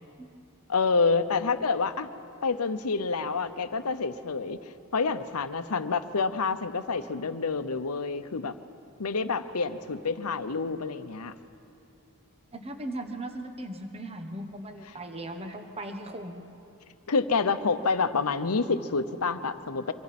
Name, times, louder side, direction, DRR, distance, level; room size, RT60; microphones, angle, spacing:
voice 1, 0.7-2.1 2.4-4.6 4.9-8.5 9.0-11.3 17.1-19.9, left 4 dB, 90° left, 10 dB, 0.8 m, -28 dB
voice 2, 12.5-16.5, right 1 dB, 30° right, 6 dB, 1.1 m, -38 dB
26.0 x 24.0 x 4.3 m, 2.6 s
head